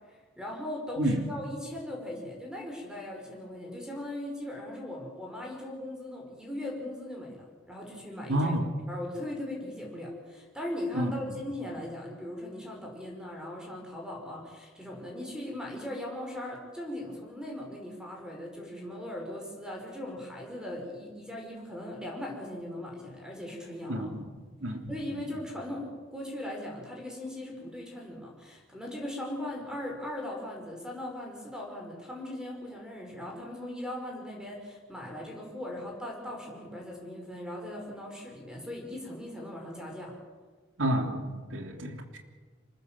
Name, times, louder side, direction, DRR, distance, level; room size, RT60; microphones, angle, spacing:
voice 1, 0.1-8.5 8.9-24.1 24.9-40.2, left 1 dB, 5° right, 0 dB, 5.5 m, -39 dB
voice 2, 8.3-8.6 10.9-11.1 23.9-24.3 24.6-24.9 40.8-42.2, right 1 dB, 75° right, 4 dB, 3.4 m, -29 dB
26.5 x 20.0 x 7.7 m, 1.4 s
head